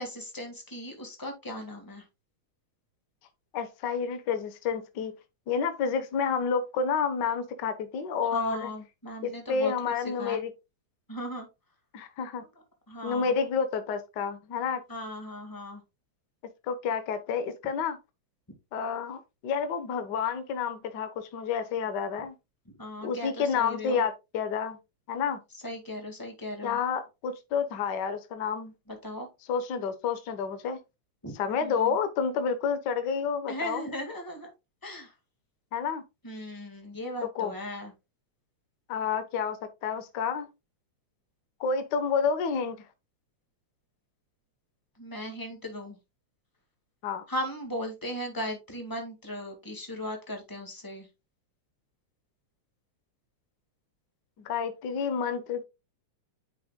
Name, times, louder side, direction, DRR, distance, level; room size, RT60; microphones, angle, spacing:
voice 1, 0.0-2.0 8.3-9.7 10.2-10.4 11.1-11.5 12.9-13.3 14.9-15.8 22.8-24.0 25.6-26.8 28.9-29.3 31.2-31.3 31.6-31.9 33.5-34.5 34.8-35.1 36.2-37.9 45.0-46.0 47.3-51.1, equal, 10° left, 1.0 m, -37 dB
voice 2, 3.5-5.1 5.5-8.7 9.2-10.5 11.9-12.4 13.0-14.8 16.7-18.0 18.7-22.3 23.0-24.8 25.1-25.4 26.6-28.7 29.5-30.8 31.3-33.9 35.7-36.0 37.3-37.5 38.9-40.5 41.6-42.8 47.0-47.2 54.4-55.6, left 6 dB, 70° left, 1.0 m, -29 dB
9.1 x 6.1 x 2.2 m
omnidirectional pair, 3.4 m